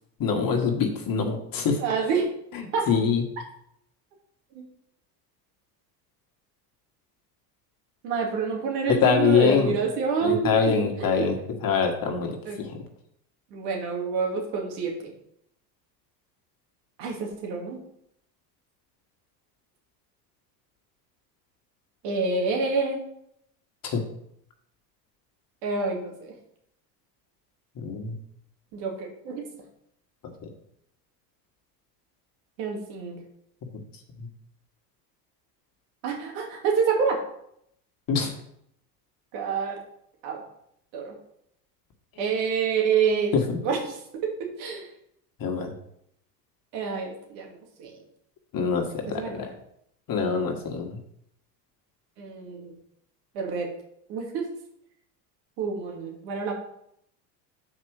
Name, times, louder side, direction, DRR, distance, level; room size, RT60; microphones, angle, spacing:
voice 1, 0.2-1.8 2.5-3.2 8.9-9.8 10.2-11.4 11.6-12.8 23.8-24.0 27.7-28.1 33.7-33.8 34.2-34.3 38.1-38.3 43.3-43.6 45.4-45.7 48.5-49.5 50.1-51.0, left 6 dB, 40° left, 3 dB, 1.6 m, -24 dB
voice 2, 1.8-2.3 2.7-2.9 4.5-4.7 8.0-10.5 11.0-11.3 12.5-12.6 13.5-15.1 17.0-17.8 22.0-23.0 25.6-26.3 28.7-29.5 32.6-33.2 36.0-37.2 39.3-39.8 40.2-40.4 40.9-41.2 42.2-43.3 43.6-44.0 44.2-44.9 46.7-48.0 49.1-49.4 52.2-52.7 53.3-53.7 54.1-54.4 55.6-56.5, right 5 dB, 70° right, 0 dB, 2.5 m, -27 dB
6.5 x 4.8 x 6.4 m, 0.73 s
hypercardioid pair, 85°, 50 cm